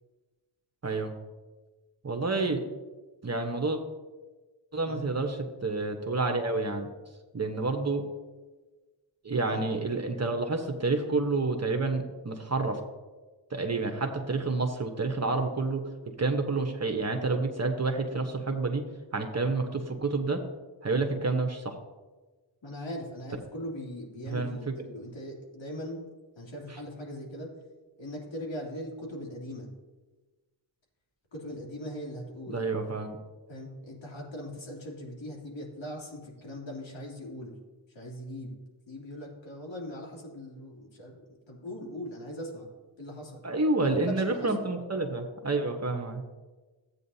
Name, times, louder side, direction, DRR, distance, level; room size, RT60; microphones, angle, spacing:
voice 1, 0.8-1.1 2.0-2.6 3.2-3.8 4.7-6.9 7.3-8.0 9.2-12.8 13.5-15.8 16.2-18.8 19.1-20.4 20.8-21.7 24.3-24.5 32.5-33.2 43.4-46.2, right 3 dB, 35° right, 4 dB, 1.1 m, -29 dB
voice 2, 22.6-26.0 26.4-27.5 28.0-29.7 31.3-32.6 33.5-37.5 37.9-38.6 38.9-42.7 43.0-43.4 44.1-44.5, equal, 70° left, -2 dB, 3.0 m, -40 dB
14.0 x 8.8 x 2.8 m, 1.3 s
cardioid pair, 75°, 47 cm